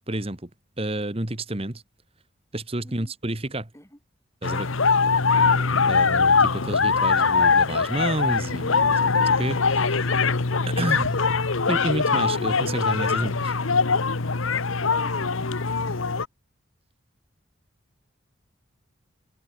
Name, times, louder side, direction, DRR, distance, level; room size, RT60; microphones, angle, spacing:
voice 1, 0.1-0.5 0.8-1.8 2.5-3.7 4.4-4.7 5.9-10.2 10.8-11.2 11.7-13.5, right 1 dB, 30° right, 1.5 m, -30 dB
voice 2, 2.8-3.1 3.7-4.0 5.8-6.0, equal, 15° left, 7.0 m, -49 dB
sound 1, 4.4-16.3, left 4 dB, 75° left, 1.2 m, -22 dB
head